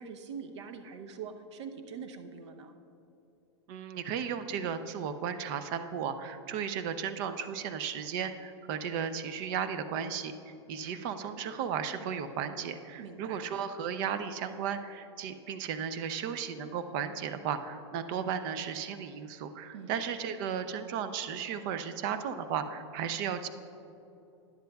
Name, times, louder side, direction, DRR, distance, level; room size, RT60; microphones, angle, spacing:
voice 1, 0.0-2.7 13.0-13.4 19.7-20.0, right 6 dB, 70° right, 7 dB, 0.8 m, -43 dB
voice 2, 3.7-23.5, right 7 dB, 45° right, 10 dB, 0.6 m, -35 dB
12.5 x 10.5 x 2.3 m, 2.9 s
hypercardioid pair, 140°, 15 cm